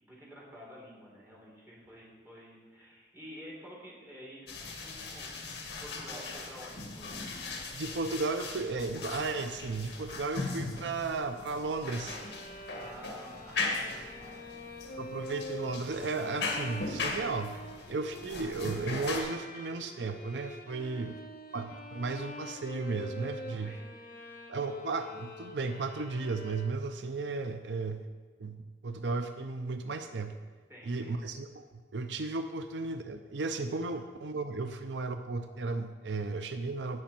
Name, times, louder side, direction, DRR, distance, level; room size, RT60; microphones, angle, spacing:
voice 1, 0.0-4.5 4.8-5.3 5.8-7.3 12.5-14.6 20.8-21.1 23.6-23.8 30.7-31.2, equal, 15° right, -5 dB, 3.6 m, -50 dB
sound 1, 4.5-19.2, left 3 dB, 75° left, 2.0 m, -39 dB
voice 2, 7.7-12.2 15.0-17.6 17.9-21.2 21.5-23.7 24.5-28.0 28.4-30.4 30.8-31.6 31.9-37.0, right 3 dB, 85° right, 8 dB, 0.6 m, -34 dB
sound 2, 12.0-27.1, left 1 dB, 55° left, 1.4 m, -46 dB
17.5 x 6.3 x 4.4 m, 1.5 s
head